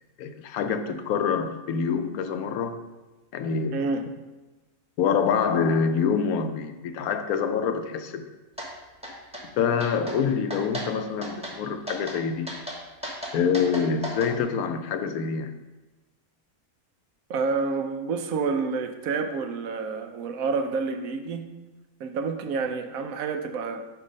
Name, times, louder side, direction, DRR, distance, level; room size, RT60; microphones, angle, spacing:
voice 1, 0.2-2.8 3.3-3.8 5.0-8.3 9.6-12.5 13.3-15.5, left 6 dB, 90° left, 9 dB, 1.1 m, -26 dB
voice 2, 3.7-4.0 17.3-21.5 22.0-23.8, right 4 dB, 75° right, 7 dB, 1.1 m, -28 dB
sound 1, 8.6-8.7 9.0-9.4 9.8-10.2 10.5-10.9 11.2-11.6 11.9-12.2 12.5-14.3, equal, 5° right, 1.1 m, -35 dB
6.0 x 4.7 x 5.0 m, 1.1 s
omnidirectional pair, 1.5 m